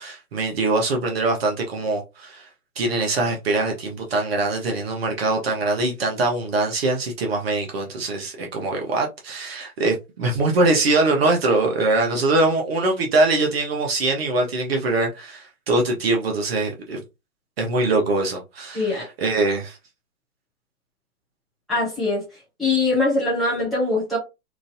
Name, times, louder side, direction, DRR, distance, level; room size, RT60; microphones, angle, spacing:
voice 1, 0.0-2.5 2.8-17.0 17.6-19.8, right 2 dB, 40° right, 0.8 m, -23 dB
voice 2, 18.7-19.1 21.7-22.2 22.6-24.2, left 2 dB, ahead, 0.5 m, -22 dB
3.0 x 2.5 x 2.6 m
figure-of-eight pair, 130°, 45 cm